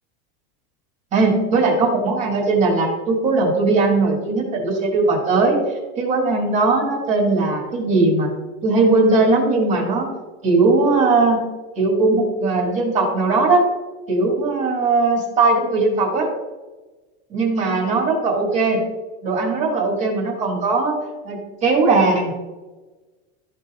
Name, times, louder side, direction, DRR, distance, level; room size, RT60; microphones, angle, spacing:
voice 1, 1.1-5.6 6.0-8.3 8.6-10.1 10.4-11.4 11.8-13.6 14.1-16.3 17.3-18.8 19.2-21.0 21.2-22.3, right 3 dB, 20° right, -1 dB, 2.0 m, -19 dB
13.0 x 5.5 x 2.5 m, 1.2 s
supercardioid pair, 175°, 31 cm